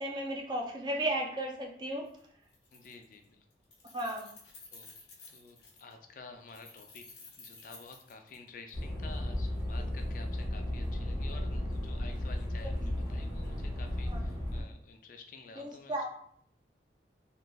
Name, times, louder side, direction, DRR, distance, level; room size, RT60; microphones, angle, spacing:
voice 1, 0.0-2.0 3.9-4.3 9.8-9.9 12.8-12.9 14.1-14.2 15.6-16.1, right 1 dB, 25° right, 0 dB, 0.4 m, -34 dB
Keys jangling, 2.1-2.2 2.5-3.2 3.5-5.9 6.5-8.7, left 4 dB, 75° left, 0.8 m, -53 dB
voice 2, 2.7-3.4 4.7-4.9 5.3-7.0 7.4-16.1, left 4 dB, 50° left, 5 dB, 0.3 m, -51 dB
sound 1, 8.7-14.6, left 1 dB, 80° right, 1.5 m, -34 dB
3.1 x 2.5 x 2.2 m, 0.64 s
head